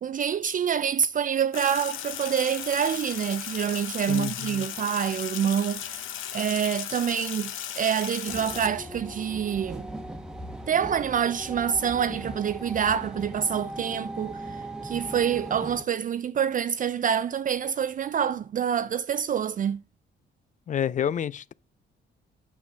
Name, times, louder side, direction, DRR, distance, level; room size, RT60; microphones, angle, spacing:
voice 1, 0.0-9.9 10.7-19.8, right 8 dB, 45° right, 0.4 m, -27 dB
Sink (filling or washing), 1.5-8.7, left 10 dB, 85° left, 0.9 m, -36 dB
voice 2, 4.1-4.6 20.7-21.5, left 9 dB, 40° left, 0.4 m, -29 dB
sound 1, 8.3-15.8, right 1 dB, 5° right, 1.1 m, -38 dB
8.8 x 5.7 x 5.4 m
cardioid pair, 90°, 20 cm